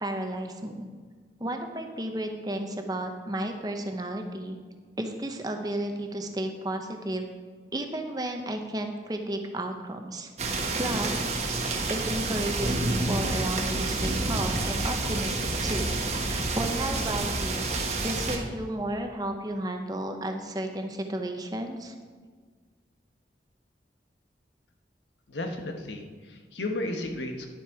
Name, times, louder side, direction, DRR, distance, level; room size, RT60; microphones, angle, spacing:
voice 1, 0.0-0.9 1.4-4.6 5.0-7.2 7.7-10.3 10.8-11.4 11.9-15.9 16.2-17.7 18.0-21.9, right 1 dB, 20° right, 4 dB, 0.8 m, -33 dB
sound 1, 10.4-18.4, right 2 dB, 40° right, 1.2 m, -28 dB
voice 2, 25.3-27.5, left 2 dB, 85° left, 3 dB, 1.3 m, -33 dB
10.5 x 7.3 x 4.8 m, 1.5 s
head